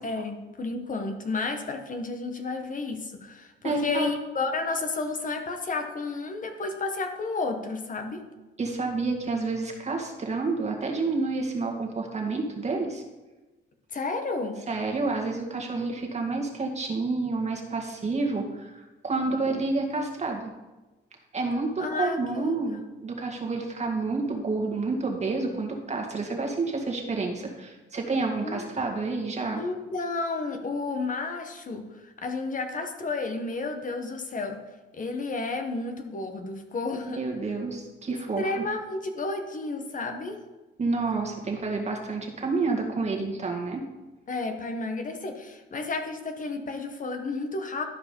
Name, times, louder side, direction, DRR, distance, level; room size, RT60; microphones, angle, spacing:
voice 1, 0.0-8.2 13.9-14.6 19.2-19.3 21.8-22.8 28.4-28.6 29.6-34.6 34.9-37.2 38.4-40.4 44.3-47.8, left 3 dB, 40° left, 5 dB, 1.2 m, -32 dB
voice 2, 3.6-4.1 8.6-13.0 14.7-20.5 21.3-29.6 37.0-38.6 40.8-43.8, right 3 dB, 35° right, 1 dB, 1.9 m, -29 dB
12.5 x 4.8 x 5.4 m, 1.1 s
cardioid pair, 90°, 20 cm